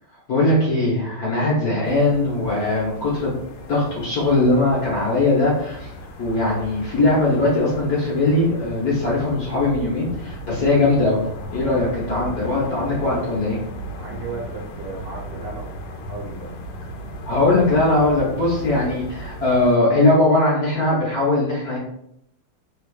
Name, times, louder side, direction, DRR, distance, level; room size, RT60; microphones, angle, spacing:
voice 1, 0.3-3.3 3.7-5.9 6.2-11.2 11.5-13.6 17.3-21.8, left 2 dB, 60° left, -6 dB, 1.1 m, -20 dB
sound 1, 1.8-19.8, equal, 85° left, 1.5 m, -36 dB
voice 2, 13.9-16.7, right 3 dB, 65° right, -4 dB, 1.3 m, -35 dB
3.4 x 3.4 x 2.3 m, 0.76 s
omnidirectional pair, 2.4 m